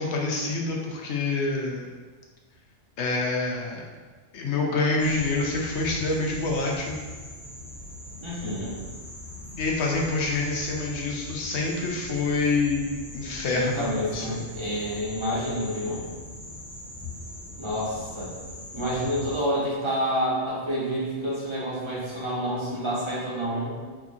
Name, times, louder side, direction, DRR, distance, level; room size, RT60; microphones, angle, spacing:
voice 1, 0.0-1.9 3.0-3.8 4.3-7.0 9.6-12.9 13.1-14.4, left 3 dB, 75° left, -1 dB, 1.0 m, -27 dB
sound 1, 5.0-19.4, left 2 dB, 15° left, 1.1 m, -41 dB
voice 2, 8.2-8.8 13.5-16.0 17.6-18.3 18.7-23.8, equal, 30° right, -7 dB, 0.9 m, -28 dB
4.5 x 2.9 x 2.4 m, 1.4 s
omnidirectional pair, 1.2 m